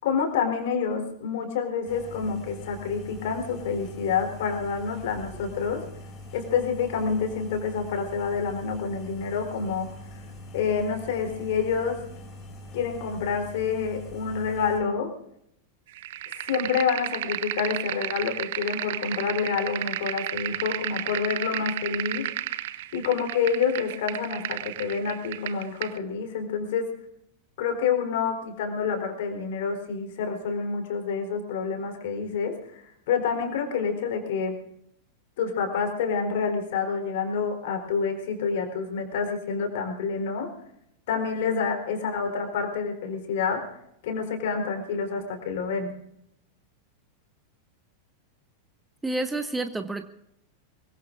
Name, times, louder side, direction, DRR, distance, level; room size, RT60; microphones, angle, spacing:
voice 1, 0.0-5.8 6.3-9.9 10.5-12.0 12.7-15.1 16.3-22.3 22.9-26.9 27.6-34.6 35.4-40.5 41.1-43.8 44.0-46.0, left 6 dB, 55° left, 4 dB, 4.0 m, -28 dB
sound 1, 1.9-14.8, left 1 dB, 25° left, 6.0 m, -43 dB
sound 2, 15.9-26.0, right 14 dB, 55° right, 0.9 m, -33 dB
voice 2, 49.0-50.1, right 2 dB, 10° right, 9 dB, 1.0 m, -29 dB
24.0 x 22.5 x 2.6 m, 0.76 s
figure-of-eight pair, 90°, 0 cm